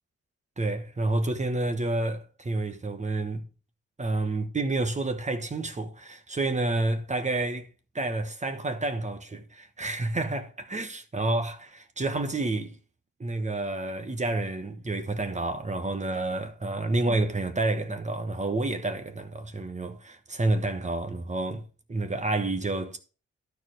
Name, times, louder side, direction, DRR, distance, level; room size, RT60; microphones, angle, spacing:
voice 1, 0.6-3.4 4.0-7.7 7.9-12.8 13.2-23.0, right 2 dB, 25° right, 1.2 m, -29 dB
12.0 x 4.6 x 6.2 m
wide cardioid pair, 120°, 29 cm